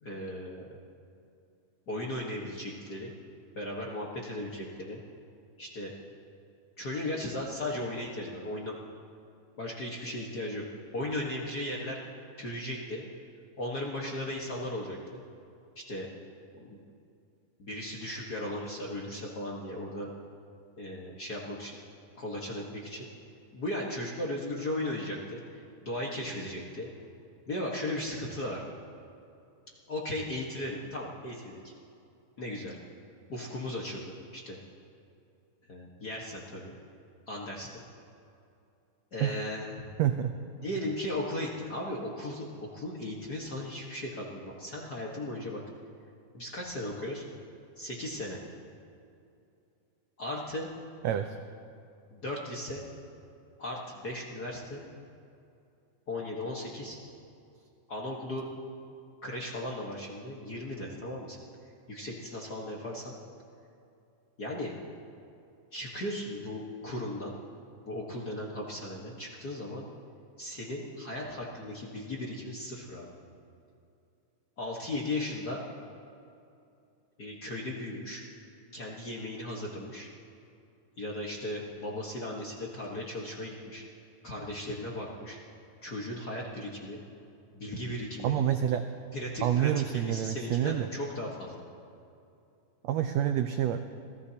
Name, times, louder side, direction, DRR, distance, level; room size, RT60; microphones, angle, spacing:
voice 1, 0.0-0.6 1.9-3.1 3.5-5.0 5.6-5.9 6.8-8.8 9.6-10.6 10.9-12.0 12.4-13.0 13.6-15.2 15.9-16.1 16.5-16.8 17.6-20.1 20.8-21.7 22.2-23.1 23.5-26.9 27.5-28.6 29.9-31.7 32.4-32.8 33.3-34.6 35.7-36.7 37.3-37.7 39.1-39.9 40.6-45.6 46.3-47.2 47.8-48.4 50.2-50.7 52.1-52.8 53.6-54.8 56.1-57.0 57.9-58.4 59.2-61.4 61.9-63.1 64.4-64.7 65.7-67.4 67.8-69.9 70.4-73.1 74.6-75.6 77.2-78.2 78.7-80.1 81.0-83.8 84.2-85.4 85.8-87.0 87.5-88.3 89.1-91.6, left 1 dB, 45° left, -3 dB, 1.3 m, -36 dB
voice 2, 40.0-40.3 51.0-51.3 88.2-88.9 89.4-90.9 92.8-93.8, right 10 dB, 80° right, 7 dB, 1.5 m, -27 dB
26.5 x 18.5 x 2.9 m, 2.6 s
omnidirectional pair, 3.7 m